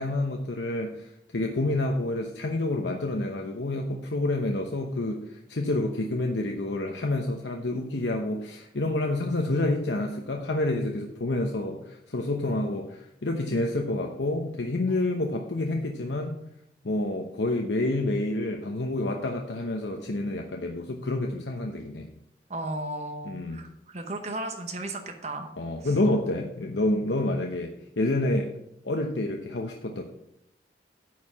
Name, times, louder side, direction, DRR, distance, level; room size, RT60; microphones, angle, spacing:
voice 1, 0.0-16.3 16.8-22.1 23.2-23.6 25.6-27.7 28.0-28.5 28.8-30.0, left 2 dB, 80° left, 3 dB, 0.9 m, -28 dB
voice 2, 22.5-25.5 25.8-26.0, right 2 dB, 40° right, 4 dB, 0.9 m, -35 dB
10.0 x 4.8 x 7.2 m, 0.79 s
head